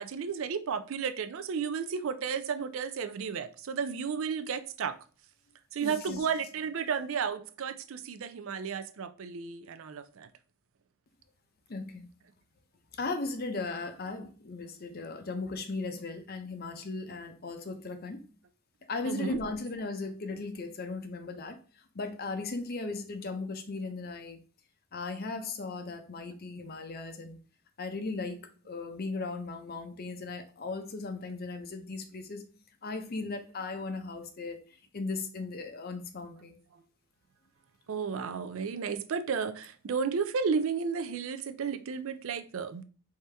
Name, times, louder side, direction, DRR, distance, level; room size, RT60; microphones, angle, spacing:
voice 1, 0.0-5.0 5.7-10.3 19.1-19.4 37.9-42.8, right 6 dB, 65° right, 0.4 m, -33 dB
voice 2, 5.8-6.2 11.7-12.1 12.9-18.2 18.9-24.4 24.9-27.4 27.8-32.5 32.8-34.6 34.9-36.6, left 3 dB, 45° left, 0.6 m, -37 dB
4.8 x 2.7 x 3.3 m
head